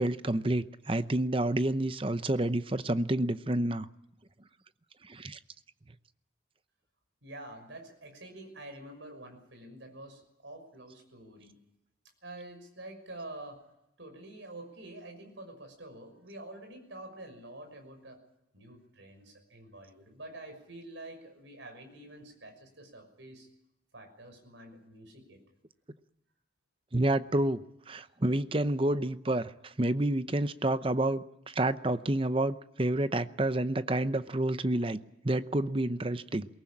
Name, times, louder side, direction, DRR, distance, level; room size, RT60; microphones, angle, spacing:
voice 1, 0.0-3.9 5.0-5.4 26.9-36.5, right 1 dB, 30° right, 12 dB, 0.8 m, -29 dB
voice 2, 7.2-11.6 12.2-13.6 14.0-18.2 18.5-23.5 23.9-25.4, right 1 dB, 75° right, 5 dB, 6.1 m, -47 dB
22.0 x 19.0 x 8.7 m, 0.85 s
head